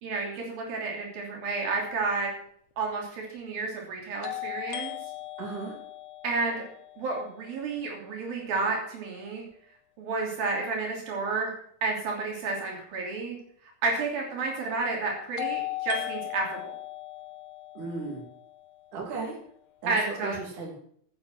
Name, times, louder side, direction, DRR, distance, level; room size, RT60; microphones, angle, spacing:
voice 1, 0.0-2.3 2.8-4.9 6.2-6.6 7.0-9.4 10.0-11.5 11.8-13.4 13.8-16.7 19.9-20.4, right 3 dB, 75° right, 0 dB, 4.8 m, -31 dB
sound 1, 2.3-2.4 4.2-8.1 15.4-19.4, left 16 dB, 80° left, 2.6 m, -38 dB
voice 2, 5.4-5.8 17.7-18.2 18.9-19.4 19.8-20.7, right 4 dB, 60° right, -2 dB, 4.4 m, -35 dB
10.5 x 10.5 x 7.5 m, 0.63 s
omnidirectional pair, 4.2 m